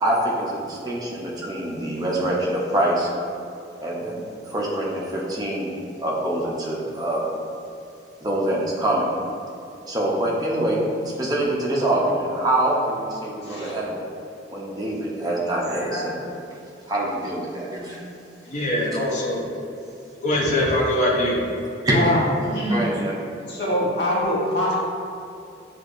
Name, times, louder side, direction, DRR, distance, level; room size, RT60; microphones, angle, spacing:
voice 1, 0.0-3.1 3.8-5.7 6.0-7.3 8.2-9.1 9.9-14.0 14.5-16.3 16.9-18.0 21.8-22.0 22.7-23.1, right 1 dB, 20° right, -4 dB, 0.5 m, -25 dB
voice 2, 13.4-13.8 15.8-16.1 17.9-18.0 18.4-18.5 21.9-22.9 23.5-24.7, equal, 60° left, -5 dB, 1.0 m, -24 dB
voice 3, 18.5-19.5 20.2-21.4, left 1 dB, 40° left, -4 dB, 0.7 m, -22 dB
6.3 x 2.5 x 2.5 m, 2.6 s
head